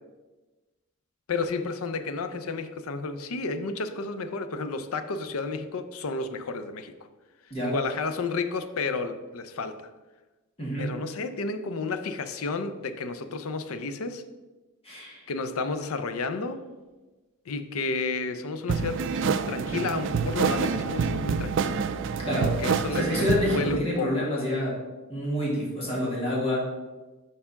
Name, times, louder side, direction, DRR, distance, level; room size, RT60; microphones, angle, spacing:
voice 1, 1.3-6.9 7.6-9.9 10.8-14.2 15.3-16.6 17.5-21.8 22.4-24.3, left 3 dB, 75° left, 10 dB, 0.5 m, -31 dB
voice 2, 10.6-10.9 14.8-15.2 22.2-22.6 22.9-24.8 25.1-26.7, left 1 dB, 30° left, -5 dB, 2.0 m, -28 dB
sound 1, 18.7-23.8, right 5 dB, 60° right, 0.4 m, -27 dB
4.9 x 4.5 x 5.6 m, 1.2 s
head